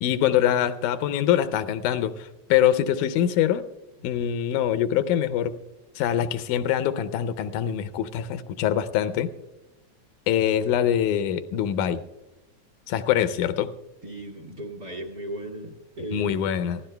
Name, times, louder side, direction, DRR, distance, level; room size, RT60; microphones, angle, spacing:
voice 1, 0.0-3.7 4.0-5.6 6.0-9.3 10.3-12.0 12.9-13.7 16.1-16.8, left 10 dB, 85° left, 13 dB, 2.1 m, -24 dB
voice 2, 14.0-16.4, right 1 dB, 40° right, 4 dB, 1.7 m, -36 dB
27.0 x 15.5 x 2.2 m, 0.98 s
omnidirectional pair, 3.5 m